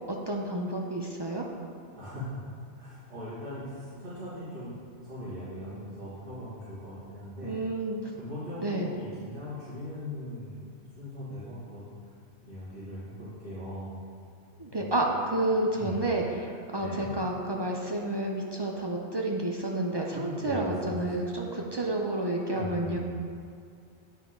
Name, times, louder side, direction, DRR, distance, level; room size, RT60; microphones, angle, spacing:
voice 1, 0.1-1.5 7.4-8.0 8.6-8.9 14.6-23.0, right 1 dB, 40° right, 0 dB, 0.3 m, -30 dB
voice 2, 1.9-2.4 2.8-4.7 5.0-7.5 8.2-10.7 11.0-11.9 12.4-13.9 14.7-15.1 15.7-16.0 16.7-17.1 20.1-21.3 22.5-23.0, left 1 dB, 85° right, -15 dB, 2.3 m, -39 dB
9.2 x 4.4 x 3.8 m, 2.3 s
omnidirectional pair, 1.2 m